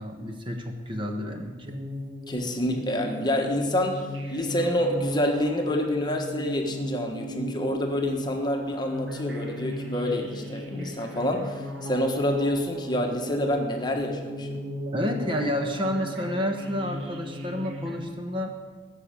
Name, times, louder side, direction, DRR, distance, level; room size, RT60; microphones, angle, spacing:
voice 1, 0.0-1.8 14.9-18.5, equal, 30° right, 4 dB, 1.3 m, -30 dB
sound 1, 1.6-18.0, equal, 80° right, 2.0 m, -37 dB
voice 2, 2.3-14.6, left 1 dB, 25° left, 3 dB, 1.3 m, -27 dB
15.0 x 6.6 x 8.9 m, 1.4 s
head